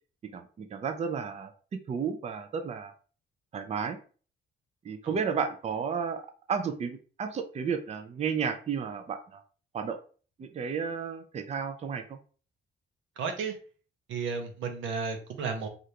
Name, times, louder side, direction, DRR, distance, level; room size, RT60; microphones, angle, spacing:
voice 1, 0.3-1.5 1.9-2.9 3.5-4.0 4.8-6.2 6.5-9.4 9.7-10.0 10.4-12.2, right 6 dB, 35° right, 6 dB, 0.4 m, -32 dB
voice 2, 13.2-13.6 14.1-15.7, right 5 dB, 90° right, 5 dB, 0.7 m, -33 dB
3.3 x 2.5 x 2.8 m, 0.40 s
cardioid pair, 100°, 20 cm